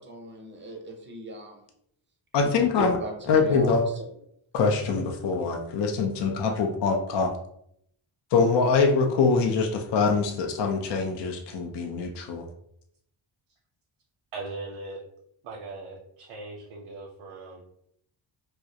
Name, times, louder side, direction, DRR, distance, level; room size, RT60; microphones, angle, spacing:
voice 1, 0.0-1.6 2.4-4.0, right 1 dB, 25° right, 1 dB, 0.5 m, -39 dB
voice 2, 2.3-2.9 3.3-3.9 4.5-7.3 8.3-12.4, left 4 dB, 60° left, 2 dB, 0.5 m, -24 dB
voice 3, 14.3-15.0 15.4-17.6, right 3 dB, 80° right, -1 dB, 0.6 m, -39 dB
2.3 x 2.0 x 2.6 m, 0.72 s
cardioid pair, 95°, 49 cm